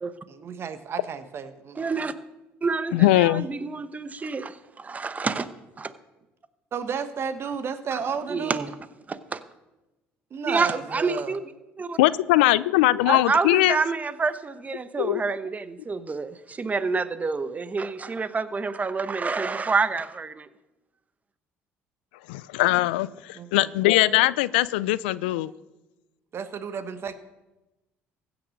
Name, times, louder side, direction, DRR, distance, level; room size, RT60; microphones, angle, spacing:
voice 1, 0.3-2.0 6.7-8.7 10.3-11.4 23.4-23.7 26.3-27.2, right 6 dB, 50° right, 10 dB, 1.2 m, -32 dB
voice 2, 1.8-2.1 2.6-5.5 5.8-5.9 8.3-8.6 9.1-9.4 10.5-11.4 11.8-12.0 13.0-20.5, right 4 dB, 30° right, 13 dB, 0.8 m, -28 dB
voice 3, 2.9-3.5 12.0-13.8 15.0-15.2 22.3-25.5, left 17 dB, 90° left, 19 dB, 0.3 m, -21 dB
15.5 x 6.2 x 6.5 m, 1.0 s
supercardioid pair, 70°, 5 cm